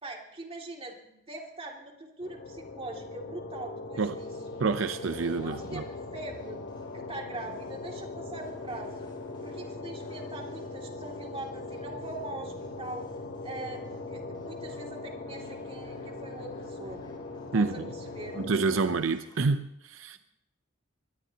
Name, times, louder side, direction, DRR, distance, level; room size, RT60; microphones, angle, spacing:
voice 1, 0.0-4.3 5.4-5.8 6.1-6.6 6.9-9.1 9.4-13.1 13.4-17.1 17.5-18.4, right 2 dB, 30° right, 2.6 m, -42 dB
sound 1, 2.2-19.0, left 3 dB, 80° left, 2.2 m, -40 dB
sound 2, 4.2-19.5, left 1 dB, 25° left, 4.6 m, -57 dB
voice 2, 4.6-5.8 17.5-17.9 18.4-20.2, right 4 dB, 80° right, 0.6 m, -28 dB
22.5 x 18.5 x 2.9 m
head